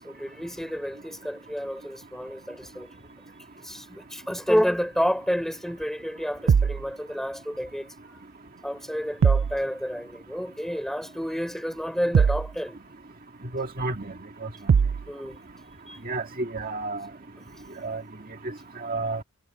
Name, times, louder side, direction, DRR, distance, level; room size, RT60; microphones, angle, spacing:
voice 1, 0.0-3.1 3.6-7.9 8.6-12.8 15.1-15.4 15.9-16.0, equal, ahead, 4.1 m, -30 dB
sound 1, 6.5-6.8 9.2-9.6 12.1-12.5 14.7-15.1, right 6 dB, 60° right, 0.3 m, -20 dB
voice 2, 13.5-14.1 14.4-14.5 16.1-17.1 17.8-18.0 18.8-19.2, right 3 dB, 40° right, 1.9 m, -30 dB
head